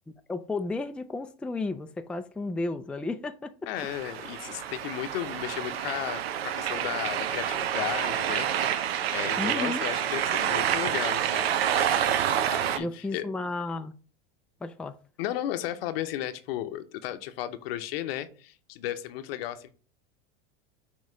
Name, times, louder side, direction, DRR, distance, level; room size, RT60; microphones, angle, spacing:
voice 1, 0.3-3.5 9.4-9.8 12.8-13.9 14.6-14.9, left 2 dB, 5° left, 0.4 m, -33 dB
voice 2, 3.7-11.6 12.5-13.2 15.2-19.7, left 12 dB, 75° left, 0.8 m, -35 dB
sound 1, 3.8-12.8, right 9 dB, 90° right, 0.7 m, -28 dB
6.5 x 3.1 x 4.9 m
hypercardioid pair, 100°, 30 cm